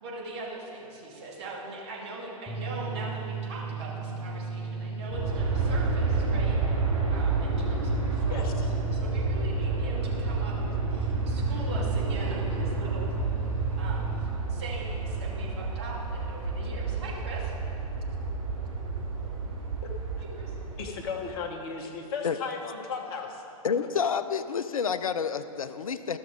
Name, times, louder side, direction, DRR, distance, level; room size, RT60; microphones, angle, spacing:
voice 1, 0.0-6.6 7.1-13.1 13.8-17.5 20.2-20.6, right 2 dB, 45° right, -5 dB, 2.5 m, -41 dB
sound 1, 2.5-14.2, right 5 dB, 10° left, 1.0 m, -35 dB
Aircraft, 5.1-21.3, right 3 dB, 60° right, 1.9 m, -30 dB
voice 2, 8.3-8.7 19.8-20.0 20.8-23.4, left 5 dB, 40° left, 2 dB, 1.2 m, -35 dB
voice 3, 23.6-26.2, left 6 dB, 70° left, 12 dB, 0.5 m, -29 dB
13.5 x 6.2 x 4.6 m, 2.8 s
figure-of-eight pair, 110°, 19 cm